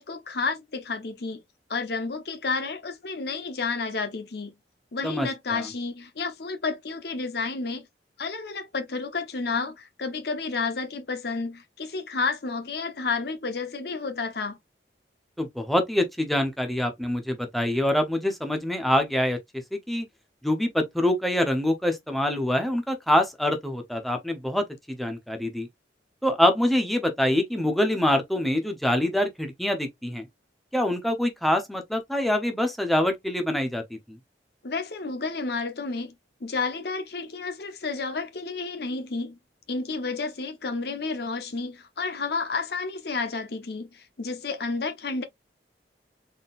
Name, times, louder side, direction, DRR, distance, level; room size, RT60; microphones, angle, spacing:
voice 1, 0.0-1.4 1.7-4.5 4.9-7.9 8.2-14.6 34.6-36.1 36.4-39.4 39.7-45.2, left 4 dB, 60° left, 0.8 m, -31 dB
voice 2, 5.0-5.6 15.4-19.4 19.7-20.1 20.4-25.7 26.2-30.2 30.7-33.8 34.1-34.2, left 1 dB, ahead, 0.6 m, -25 dB
4.1 x 3.6 x 2.4 m
head